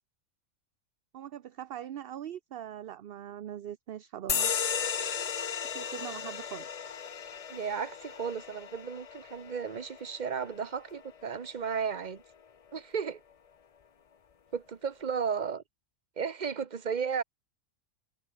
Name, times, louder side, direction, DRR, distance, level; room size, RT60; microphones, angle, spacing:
voice 1, 1.1-4.5 5.7-6.8, right 10 dB, 55° right, 0.7 m, -41 dB
sound 1, 4.3-11.4, left 7 dB, 50° left, 0.4 m, -35 dB
voice 2, 7.5-12.2 12.7-13.2 14.5-15.6 16.2-17.2, right 6 dB, 35° right, 1.1 m, -34 dB
omnidirectional pair, 1.4 m